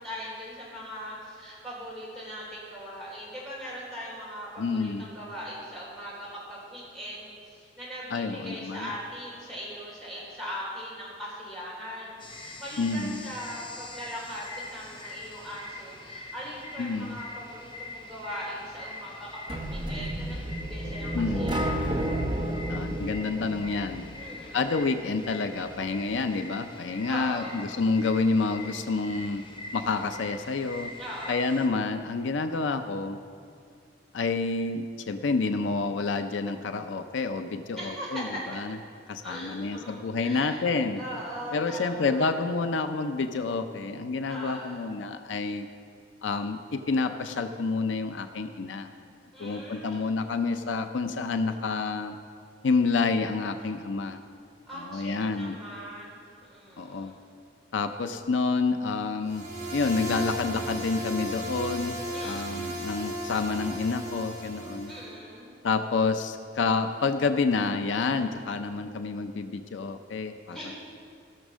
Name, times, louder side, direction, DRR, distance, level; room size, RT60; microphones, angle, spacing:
voice 1, 0.0-21.9 24.2-24.8 27.1-27.7 31.0-31.5 37.7-38.4 39.2-40.6 41.0-42.3 44.3-44.8 49.3-50.1 54.7-57.2 62.1-62.9 64.8-65.5 70.5-70.7, equal, 5° left, -7 dB, 3.7 m, -40 dB
voice 2, 4.6-5.1 8.1-8.9 12.8-13.3 16.8-17.2 21.1-21.5 22.7-24.1 24.5-29.4 29.7-30.9 31.3-33.2 34.1-38.8 39.1-41.0 41.5-45.7 46.2-48.9 49.4-52.2 52.6-54.2 54.7-55.6 56.8-57.1 57.7-62.0 62.2-64.9 65.6-70.7, left 4 dB, 80° left, 8 dB, 0.5 m, -28 dB
sound 1, 12.2-31.7, left 2 dB, 25° left, 1.1 m, -44 dB
sound 2, 19.5-24.4, right 1 dB, 25° right, 0.8 m, -31 dB
sound 3, 59.2-65.1, equal, 45° right, 2.7 m, -35 dB
16.0 x 6.4 x 6.2 m, 2.3 s
head